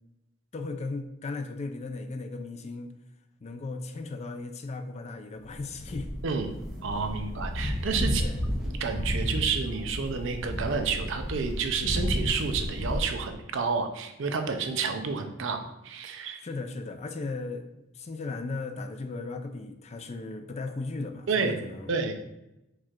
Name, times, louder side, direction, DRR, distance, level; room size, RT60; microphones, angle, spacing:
voice 1, 0.5-2.9 3.4-6.1 8.2-8.5 16.3-22.0, left 3 dB, 30° left, 7 dB, 0.4 m, -36 dB
sound 1, 5.5-13.0, equal, ahead, 0.7 m, -32 dB
voice 2, 6.8-8.2 8.6-16.4 21.3-22.1, right 5 dB, 65° right, 6 dB, 0.5 m, -30 dB
4.7 x 2.4 x 4.3 m, 0.90 s
head